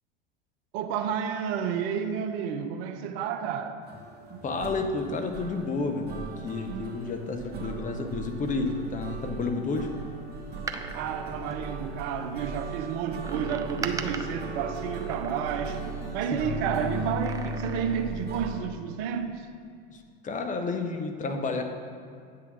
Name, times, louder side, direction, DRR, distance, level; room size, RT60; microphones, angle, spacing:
voice 1, 0.7-3.8 10.9-15.8 16.1-19.5, right 7 dB, 55° right, 7 dB, 0.7 m, -31 dB
sound 1, 3.8-18.6, right 2 dB, 30° right, 1.8 m, -37 dB
voice 2, 4.4-9.9 19.9-21.6, left 3 dB, 25° left, 5 dB, 0.8 m, -31 dB
Door, 10.5-12.3 13.2-16.1 17.0-18.2 18.5-18.6, right 4 dB, 10° right, 0.4 m, -40 dB
8.5 x 3.7 x 6.1 m, 2.3 s
hypercardioid pair, 80°, 30 cm